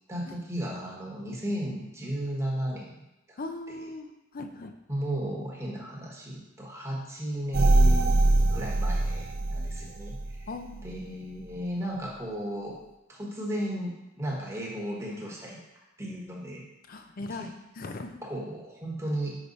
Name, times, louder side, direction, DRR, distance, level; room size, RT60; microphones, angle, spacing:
voice 1, 0.1-3.0 3.3-3.4 4.9-8.2 8.4-10.5 10.8-12.8 13.1-15.6 16.0-16.6 17.4-17.5 18.2-19.4, right 1 dB, 15° right, -3 dB, 1.3 m, -34 dB
voice 2, 3.4-4.7 10.5-11.0 16.9-18.3, left 2 dB, 45° left, 6 dB, 0.5 m, -39 dB
sound 1, 7.5-10.4 10.8-10.9, right 2 dB, 85° right, 0.6 m, -23 dB
5.7 x 5.0 x 4.1 m, 0.95 s
head